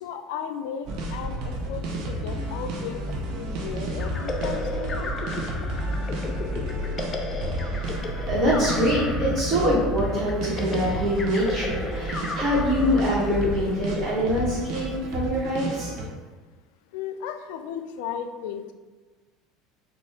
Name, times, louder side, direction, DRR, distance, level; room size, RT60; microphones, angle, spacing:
voice 1, 0.0-5.1 16.9-18.7, left 8 dB, 75° left, 8 dB, 0.3 m, -35 dB
sound 1, 0.8-16.0, right 1 dB, 60° right, 0.7 m, -31 dB
sound 2, 4.0-14.6, left 2 dB, 30° left, 0.6 m, -34 dB
voice 2, 8.3-15.9, equal, 45° right, -10 dB, 1.4 m, -24 dB
4.2 x 2.5 x 3.5 m, 1.3 s
hypercardioid pair, 85°, 0 cm